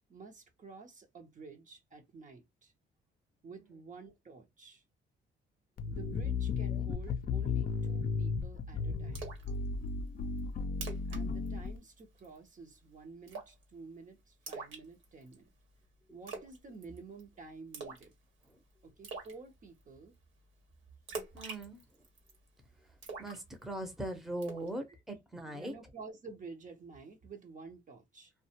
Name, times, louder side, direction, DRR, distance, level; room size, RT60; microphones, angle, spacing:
voice 1, 0.1-2.7 3.4-4.8 5.8-9.2 11.1-15.5 16.1-18.1 18.8-20.2 25.4-28.3, right 4 dB, 40° right, 0.8 m, -51 dB
sound 1, 5.8-11.8, left 5 dB, 50° left, 0.5 m, -34 dB
Splash splatter, 9.1-9.5 9.9-10.0 10.4-10.5 10.7-11.2 11.5-11.7 12.0-12.4 13.3-13.6 14.5-15.3 16.3-16.6 16.8-17.2 17.7-18.1 18.4-18.5 19.0-19.3 21.1-22.3 23.0-23.9 24.4-24.7, right 4 dB, 80° right, 1.1 m, -43 dB
voice 2, 21.3-21.8 22.8-25.7, right 1 dB, ahead, 0.7 m, -41 dB
2.3 x 2.2 x 2.8 m
cardioid pair, 90°, 20 cm